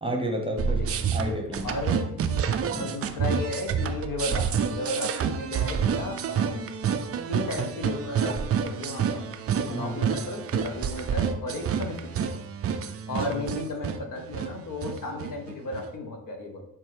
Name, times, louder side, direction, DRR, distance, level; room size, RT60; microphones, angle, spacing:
voice 1, 0.0-1.7 2.6-2.9 9.7-10.0 13.3-13.4, right 1 dB, 10° right, 1 dB, 1.0 m, -31 dB
sound 1, 0.6-15.9, right 7 dB, 35° right, 0.4 m, -28 dB
voice 2, 1.6-2.1 2.8-6.7 7.3-9.3 9.6-12.1 13.1-16.7, left 2 dB, 50° left, 2 dB, 1.0 m, -34 dB
5.4 x 2.2 x 3.3 m, 0.76 s
hypercardioid pair, 50°, 43 cm